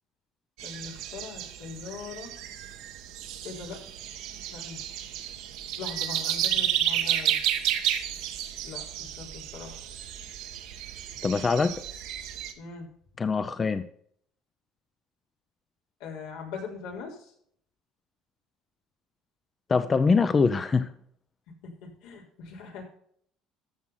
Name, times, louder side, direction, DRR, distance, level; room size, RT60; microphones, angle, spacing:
voice 1, 0.6-2.3 3.4-3.8 4.4-4.8 5.8-7.4 8.6-9.8 12.6-12.9 16.0-17.3 21.6-22.9, left 5 dB, 85° left, -1 dB, 3.8 m, -41 dB
sound 1, 0.6-12.5, right 11 dB, 80° right, 1.4 m, -32 dB
voice 2, 11.2-11.7 13.2-13.8 19.7-20.9, left 4 dB, 25° left, 11 dB, 0.7 m, -23 dB
14.0 x 6.2 x 5.7 m, 0.64 s
cardioid pair, 105°, 0 cm